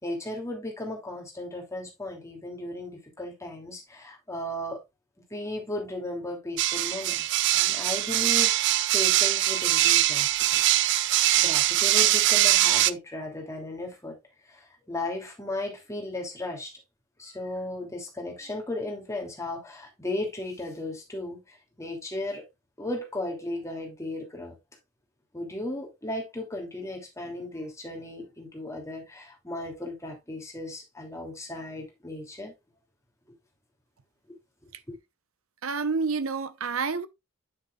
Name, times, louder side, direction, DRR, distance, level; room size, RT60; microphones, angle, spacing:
voice 1, 0.0-4.8 5.3-10.6 11.4-14.1 14.5-16.7 17.2-22.4 22.8-24.5 25.3-32.5, left 1 dB, 15° left, 2.9 m, -36 dB
sound 1, 6.6-12.9, right 14 dB, 55° right, 0.4 m, -22 dB
voice 2, 35.6-37.1, right 4 dB, 75° right, 0.9 m, -29 dB
8.8 x 6.8 x 2.4 m
head